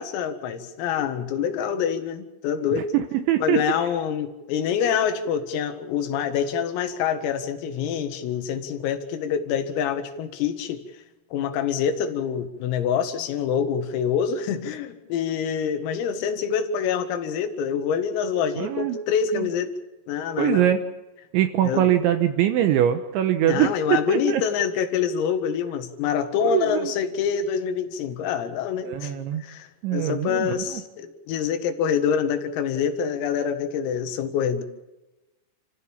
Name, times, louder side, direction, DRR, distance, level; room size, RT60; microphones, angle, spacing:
voice 1, 0.0-2.9 3.4-10.8 11.3-19.7 20.1-20.7 21.6-21.8 23.4-29.1 29.4-34.6, left 7 dB, 90° left, 8 dB, 4.4 m, -26 dB
voice 2, 2.9-3.6 18.6-19.0 19.4-19.5 20.4-20.8 21.3-23.7 24.1-24.4 26.4-26.9 28.9-29.4 29.8-30.8, right 11 dB, 75° right, 8 dB, 3.1 m, -22 dB
28.5 x 15.0 x 7.2 m, 1.0 s
omnidirectional pair, 5.9 m